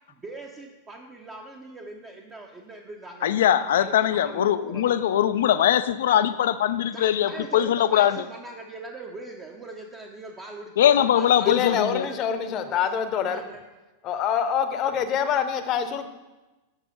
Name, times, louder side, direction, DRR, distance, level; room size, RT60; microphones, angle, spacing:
voice 1, 0.1-3.4 3.8-5.0 6.9-13.0 13.2-13.6, right 2 dB, 20° right, 0 dB, 0.8 m, -41 dB
voice 2, 3.2-8.2 10.8-12.0, left 10 dB, 60° left, 13 dB, 0.4 m, -21 dB
voice 3, 11.5-13.4 14.0-16.1, left 8 dB, 35° left, 10 dB, 0.8 m, -25 dB
7.3 x 6.5 x 5.1 m, 1.1 s
figure-of-eight pair, 90°, 0 cm